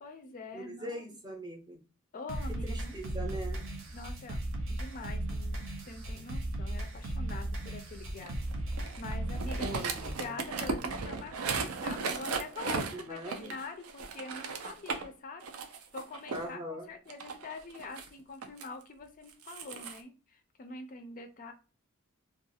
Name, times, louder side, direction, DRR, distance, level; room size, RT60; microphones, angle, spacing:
voice 1, 0.0-1.2 2.1-3.0 3.9-4.4 4.7-8.4 8.7-9.8 10.2-21.5, left 3 dB, 40° left, 7 dB, 0.4 m, -45 dB
voice 2, 0.5-1.8 2.6-3.6 9.6-10.4 12.9-13.5 16.3-16.9, right 1 dB, 20° right, 2 dB, 0.6 m, -41 dB
sound 1, 2.3-10.3, right 1 dB, 65° right, 0.8 m, -36 dB
sound 2, 8.2-15.1 15.4-16.5 17.1-18.6 19.3-20.0, right 4 dB, 90° right, 0.5 m, -36 dB
2.3 x 2.3 x 2.6 m, 0.34 s
head